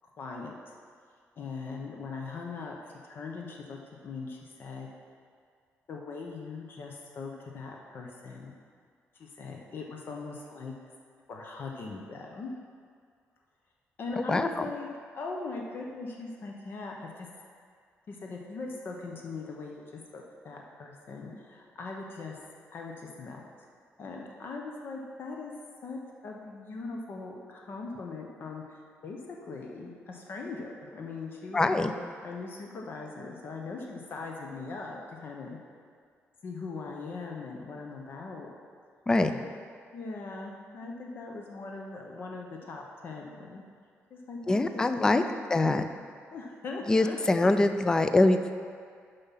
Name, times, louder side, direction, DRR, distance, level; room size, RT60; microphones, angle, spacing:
voice 1, 0.2-0.7 1.4-2.8 3.0-4.9 5.9-8.5 9.2-10.7 11.3-12.5 14.0-14.9 15.2-17.3 18.1-23.4 24.0-25.5 25.8-35.6 36.4-38.5 39.2-39.5 39.9-43.6 44.1-45.2 45.6-45.8 46.3-47.5, left 3 dB, 50° left, 0 dB, 0.8 m, -40 dB
voice 2, 14.2-14.7 31.5-31.9 39.1-39.3 44.5-45.2 45.5-45.8 46.9-48.6, left 2 dB, 15° left, 9 dB, 0.3 m, -24 dB
7.1 x 5.5 x 5.7 m, 2.1 s
cardioid pair, 150°, 5 cm